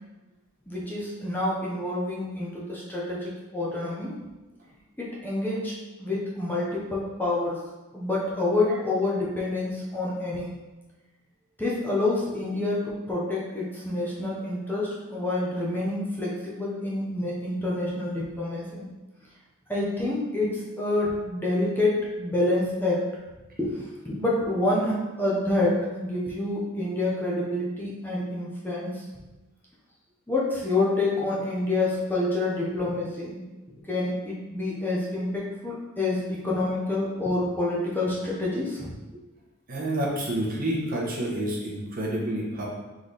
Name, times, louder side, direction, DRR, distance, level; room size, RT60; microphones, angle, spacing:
voice 1, 0.7-4.1 5.0-5.7 6.0-7.6 7.9-10.6 11.6-18.9 19.7-23.0 23.6-23.8 24.1-29.0 30.3-33.4 33.9-38.9, left 2 dB, 10° left, -6 dB, 0.7 m, -27 dB
voice 2, 39.7-42.7, right 1 dB, 40° right, -3 dB, 1.0 m, -28 dB
3.8 x 3.2 x 4.0 m, 1.1 s
head